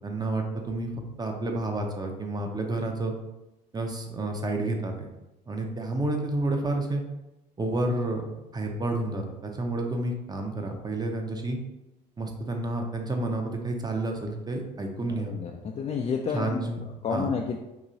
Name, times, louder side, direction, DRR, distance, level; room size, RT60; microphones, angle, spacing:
voice 1, 0.0-0.9 1.2-3.1 3.7-5.1 5.5-7.0 7.6-8.2 8.5-11.6 12.2-15.4 16.3-17.3, right 2 dB, 20° right, 3 dB, 0.7 m, -30 dB
voice 2, 15.1-16.6 17.0-17.6, left 6 dB, 30° left, 1 dB, 0.4 m, -30 dB
3.0 x 2.6 x 3.8 m, 0.97 s
hypercardioid pair, 65°, 21 cm